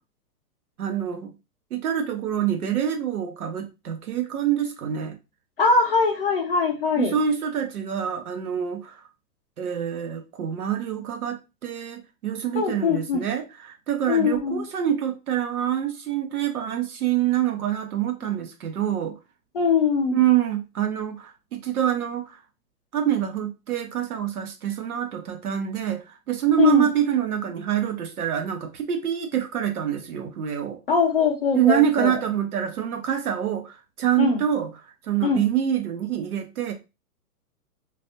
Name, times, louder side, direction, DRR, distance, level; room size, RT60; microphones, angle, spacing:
voice 1, 0.8-1.3 1.7-5.2 7.0-9.0 9.6-19.2 20.1-22.4 22.9-30.8 31.5-34.7 35.0-36.7, right 10 dB, 65° right, 0.9 m, -26 dB
voice 2, 5.6-7.2 12.5-13.2 14.1-14.6 19.5-20.2 26.6-26.9 30.9-32.2 34.2-34.4 35.2-35.4, left 5 dB, 35° left, 0.6 m, -22 dB
3.3 x 2.6 x 2.7 m
hypercardioid pair, 170°, 47 cm